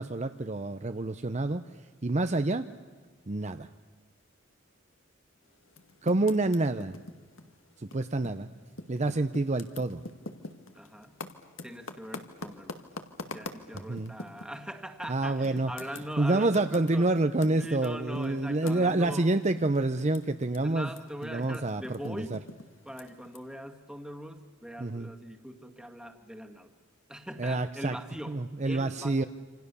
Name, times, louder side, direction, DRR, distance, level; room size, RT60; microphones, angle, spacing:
voice 1, 0.0-1.6 2.0-2.7 3.3-3.7 6.0-7.0 7.8-8.5 8.9-10.0 13.9-14.1 15.1-15.7 16.2-20.9 21.2-22.4 24.8-25.1 27.4-27.9 28.3-29.2, right 2 dB, 35° right, 9 dB, 0.7 m, -28 dB
Typing, 5.7-8.5 8.7-14.6 15.0-15.1 15.4-20.6 20.8-23.4, left 2 dB, 75° left, 2.0 m, -44 dB
voice 2, 10.7-11.2 11.6-12.8 13.3-17.1 17.5-19.3 20.6-22.4 22.9-26.7 27.1-29.3, equal, 5° right, 4 dB, 1.8 m, -41 dB
28.0 x 27.5 x 7.0 m, 1.5 s
head